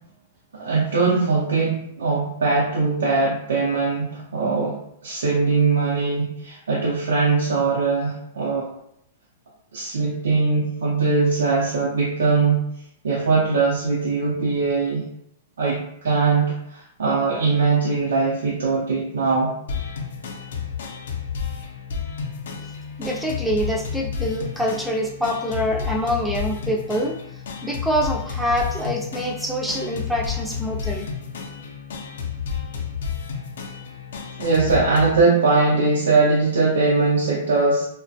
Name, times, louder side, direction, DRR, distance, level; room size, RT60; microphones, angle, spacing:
voice 1, 0.5-8.7 9.7-12.6 13.0-15.0 15.6-19.5 34.4-37.8, right 4 dB, 85° right, -5 dB, 0.6 m, -21 dB
sound 1, 19.7-35.2, left 6 dB, 75° left, 0.5 m, -31 dB
voice 2, 23.0-27.2 27.6-31.1, equal, ahead, -1 dB, 0.4 m, -25 dB
2.4 x 2.1 x 2.6 m, 0.74 s
hypercardioid pair, 145°, 0 cm